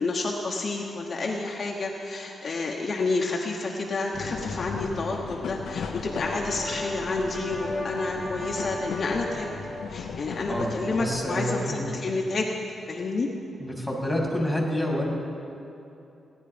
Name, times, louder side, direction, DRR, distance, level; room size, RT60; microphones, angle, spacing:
voice 1, 0.0-9.5 9.9-12.5 12.9-13.3, left 3 dB, 45° left, -1 dB, 1.1 m, -29 dB
sound 1, 4.1-11.2, left 6 dB, 85° left, 0.7 m, -36 dB
Brass instrument, 5.9-10.1, left 1 dB, 30° right, 2.5 m, -37 dB
voice 2, 10.5-11.9 13.6-15.1, left 1 dB, ahead, -2 dB, 2.7 m, -28 dB
17.0 x 10.0 x 5.1 m, 2.8 s
cardioid pair, 115°, 0 cm